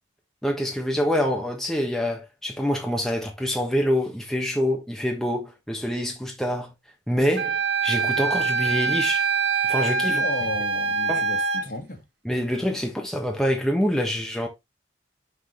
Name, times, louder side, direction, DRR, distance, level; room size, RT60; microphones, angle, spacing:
voice 1, 0.4-6.7 7.1-9.3 9.7-10.2 11.1-11.2 12.2-14.5, equal, ahead, 1.3 m, -26 dB
Wind instrument woodwind instrument, 7.4-11.6, right 4 dB, 65° right, 1.0 m, -24 dB
voice 2, 10.0-12.0, left 1 dB, 50° left, 2.0 m, -33 dB
6.1 x 6.1 x 3.3 m
head